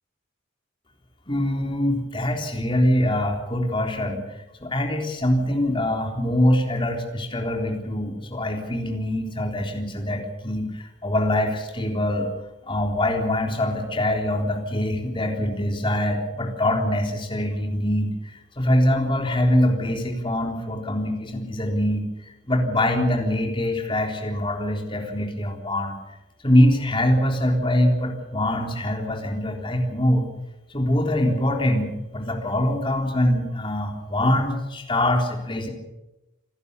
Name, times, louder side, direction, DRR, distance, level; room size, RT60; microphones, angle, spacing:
voice 1, 1.3-4.2 4.6-12.3 12.7-18.3 18.6-22.1 22.5-25.9 26.4-30.2 30.7-35.7, left 1 dB, 25° left, 2 dB, 3.7 m, -23 dB
27.5 x 12.5 x 8.3 m, 0.97 s
head